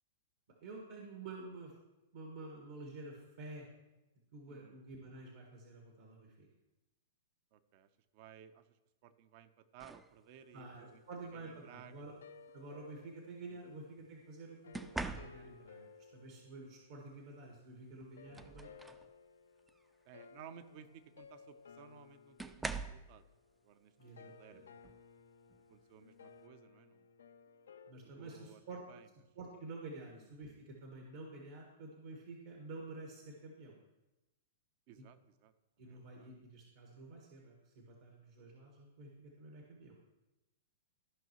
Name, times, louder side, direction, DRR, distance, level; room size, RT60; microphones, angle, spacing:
voice 1, 0.6-1.7 2.1-3.7 4.3-6.5 10.5-12.1 12.5-15.9 16.1-18.7 24.0-24.7 27.9-28.8 29.3-33.8 34.9-35.0 35.8-40.0, right 3 dB, 65° right, 0 dB, 1.6 m, -50 dB
voice 2, 7.5-8.7 9.0-11.0 11.3-12.0 13.5-13.6 18.3-18.6 20.1-23.2 23.6-23.9 24.2-24.6 25.7-27.1 28.0-29.1 30.2-30.3 34.9-35.5 35.8-36.3, right 9 dB, 50° right, 12 dB, 0.7 m, -58 dB
sound 1, 9.8-10.1 11.4-11.7 14.7-15.7 17.5-17.6 18.0-19.1 19.6-19.9 21.2-21.3 22.4-23.1 24.8-25.0 25.5-25.8, right 3 dB, 10° right, 0.4 m, -43 dB
sound 2, 10.4-17.6 18.2-27.9, left 5 dB, 80° left, 0.4 m, -60 dB
14.0 x 5.5 x 3.0 m, 1.0 s
hypercardioid pair, 120°, 0 cm